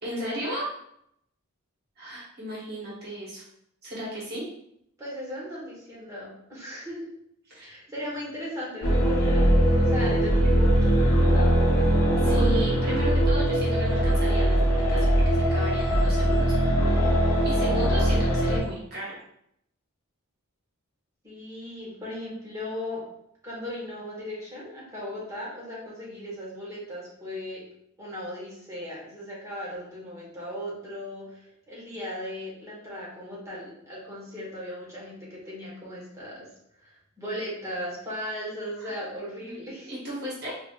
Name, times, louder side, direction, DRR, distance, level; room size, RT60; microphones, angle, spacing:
voice 1, 0.0-0.7 2.0-3.4 3.8-4.4 7.5-7.7 12.2-17.2 17.4-19.2 38.8-39.0 39.4-39.6 39.9-40.5, equal, 50° right, -6 dB, 1.3 m, -35 dB
voice 2, 5.0-7.0 7.6-11.9 21.2-23.0 23.4-27.6 28.0-36.5 36.8-39.9, left 1 dB, 15° right, -6 dB, 1.4 m, -37 dB
sound 1, 8.8-18.6, equal, 75° left, 0.8 m, -21 dB
4.4 x 2.6 x 2.4 m, 0.73 s
head